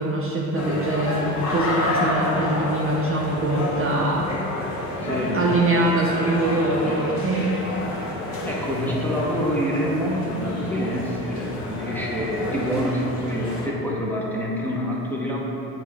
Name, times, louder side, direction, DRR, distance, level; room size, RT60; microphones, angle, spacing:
voice 1, 0.0-4.4 5.0-7.5, right 2 dB, 30° right, -4 dB, 0.7 m, -23 dB
sound 1, 0.5-13.7, left 1 dB, 35° left, 1.2 m, -29 dB
voice 2, 5.0-5.4 8.4-15.4, equal, 5° left, -5 dB, 0.9 m, -26 dB
7.2 x 3.1 x 4.7 m, 2.9 s
supercardioid pair, 95°, 46 cm